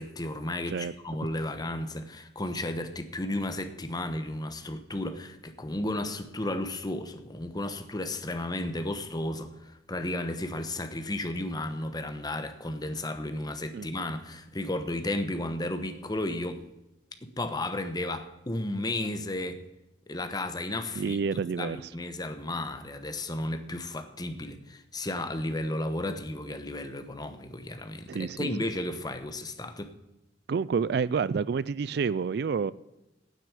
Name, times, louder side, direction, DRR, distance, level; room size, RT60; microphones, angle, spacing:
voice 1, 0.0-16.6 17.2-19.6 20.1-21.2 21.6-29.9, left 1 dB, 25° left, 9 dB, 1.1 m, -33 dB
voice 2, 21.0-21.8 28.1-28.5 30.5-32.7, right 5 dB, 60° right, 19 dB, 0.4 m, -28 dB
9.4 x 8.6 x 8.3 m, 0.96 s
head